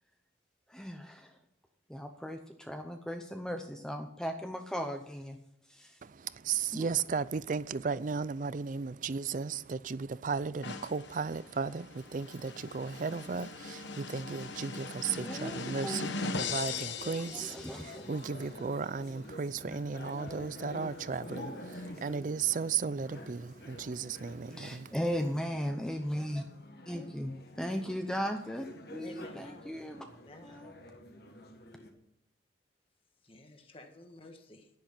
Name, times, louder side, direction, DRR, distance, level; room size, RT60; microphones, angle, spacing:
voice 1, 0.7-1.3 1.9-5.4 5.7-6.0 6.7-6.9 15.1-16.1 17.0-18.1 19.6-19.8 24.6-26.4 26.9-30.1 30.4-30.7, equal, 5° left, 0.7 m, -37 dB
voice 2, 6.0-25.0, right 5 dB, 40° right, 0.4 m, -35 dB
sound 1, 10.6-18.2, left 4 dB, 70° left, 1.1 m, -40 dB
sound 2, 15.0-31.9, left 1 dB, 55° left, 1.6 m, -49 dB
voice 3, 29.0-29.7 30.2-30.7 33.2-34.7, left 1 dB, 30° left, 1.4 m, -52 dB
10.5 x 10.5 x 5.7 m
head